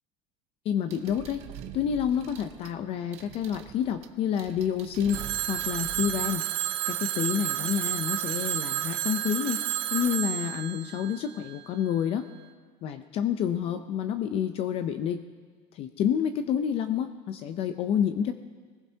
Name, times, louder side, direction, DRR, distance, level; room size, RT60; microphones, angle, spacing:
voice 1, 0.7-1.4 1.7-5.2 5.5-6.4 6.9-9.6 9.9-12.3 12.8-15.2 15.7-18.3, left 9 dB, 45° left, 9 dB, 0.6 m, -28 dB
sound 1, 0.9-6.3, right 11 dB, 55° right, 0.9 m, -45 dB
Telephone, 5.1-11.9, right 14 dB, 90° right, 0.7 m, -31 dB
21.0 x 19.5 x 2.8 m, 1.5 s
cardioid pair, 145°, 13 cm